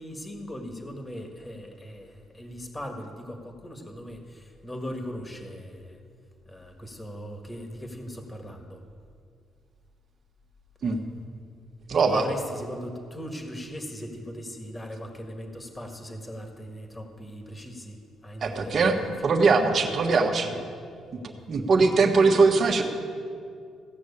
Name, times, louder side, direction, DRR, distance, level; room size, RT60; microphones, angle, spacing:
voice 1, 0.0-6.0 6.5-8.8 12.0-19.0 19.2-19.7, equal, 20° left, 3 dB, 1.8 m, -39 dB
voice 2, 11.9-12.2 18.4-19.0 19.2-20.6 21.5-22.8, right 4 dB, 50° right, 3 dB, 1.4 m, -21 dB
16.0 x 6.3 x 8.5 m, 2.3 s
cardioid pair, 90°, 0 cm